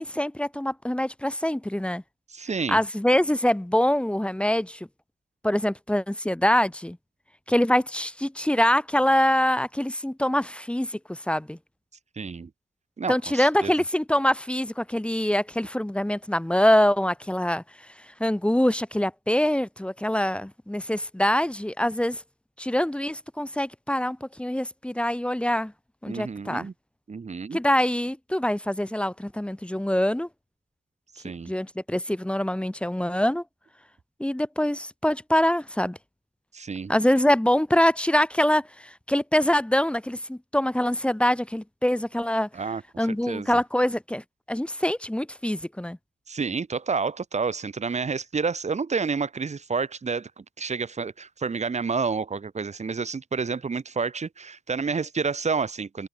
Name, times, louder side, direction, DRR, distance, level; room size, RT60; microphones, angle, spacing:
voice 1, 0.0-2.0 2.7-4.9 5.4-7.0 7.5-11.6 13.1-17.6 18.2-22.2 22.6-25.7 26.0-26.7 27.5-30.3 31.5-33.4 34.2-36.0 36.9-42.5 43.0-46.0, left 1 dB, 5° left, 2.1 m, -24 dB
voice 2, 2.3-2.8 12.2-12.5 13.0-13.7 26.1-26.7 27.1-27.6 31.2-31.5 36.5-36.9 42.5-43.6 46.3-56.1, right 5 dB, 40° right, 5.8 m, -29 dB
open air
cardioid pair, 110°, 18 cm